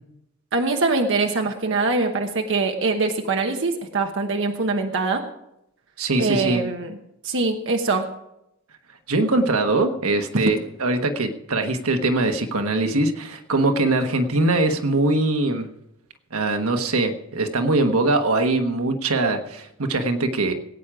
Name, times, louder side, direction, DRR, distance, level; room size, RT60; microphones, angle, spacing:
voice 1, 0.5-5.2 6.2-7.0 7.2-8.0 10.3-10.5, right 3 dB, 60° right, 3 dB, 1.0 m, -23 dB
voice 2, 6.0-6.6 9.1-15.7 16.3-20.5, right 2 dB, 80° right, 6 dB, 1.3 m, -22 dB
17.5 x 9.0 x 4.9 m, 0.81 s
head